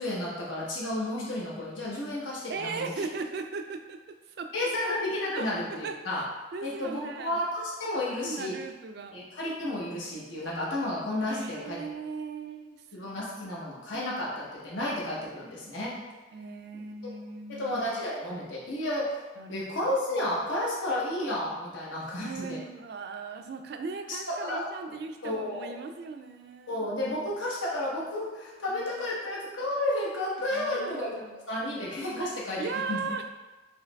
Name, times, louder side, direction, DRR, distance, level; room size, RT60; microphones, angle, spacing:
voice 1, 0.0-2.9 4.5-6.2 6.6-8.6 9.1-11.8 12.9-15.9 17.5-19.2 19.5-22.6 24.1-24.7 25.2-25.7 26.7-31.1 31.5-32.6 32.9-33.0, left 1 dB, 85° left, -5 dB, 1.0 m, -32 dB
voice 2, 2.5-4.0 4.4-4.7 5.3-6.3 6.5-7.4 8.2-9.2 11.3-13.1 16.3-17.8 19.4-19.7 22.2-26.8 28.7-29.1 30.5-31.3 32.6-33.3, right 4 dB, 55° right, 6 dB, 0.3 m, -38 dB
4.5 x 3.2 x 2.3 m, 1.2 s
head